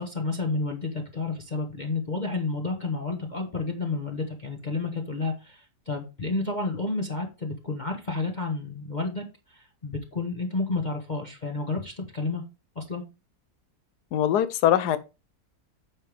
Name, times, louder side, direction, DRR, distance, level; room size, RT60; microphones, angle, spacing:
voice 1, 0.0-12.4 12.7-13.0, left 3 dB, 30° left, 1.3 m, -31 dB
voice 2, 14.1-15.0, left 11 dB, 80° left, 1.3 m, -22 dB
8.9 x 6.8 x 3.4 m
omnidirectional pair, 1.7 m